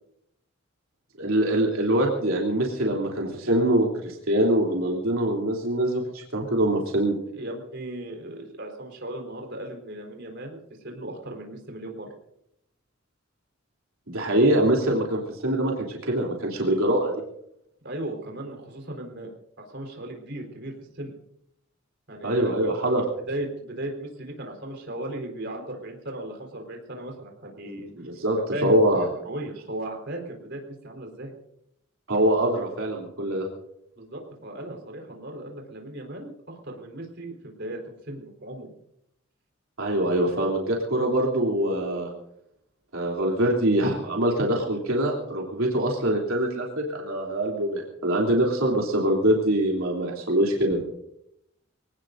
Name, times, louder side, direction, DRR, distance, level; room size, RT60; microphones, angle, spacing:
voice 1, 1.2-7.2 14.1-17.2 22.2-23.1 28.0-29.1 32.1-33.5 39.8-42.1 42.9-50.8, right 1 dB, 85° right, -2 dB, 3.3 m, -24 dB
voice 2, 7.3-12.1 17.8-19.3 19.6-21.1 22.1-22.3 22.6-22.7 23.3-27.9 28.5-31.3 34.0-38.7, right 1 dB, 55° right, 1 dB, 4.3 m, -37 dB
24.5 x 18.5 x 2.7 m, 0.79 s
head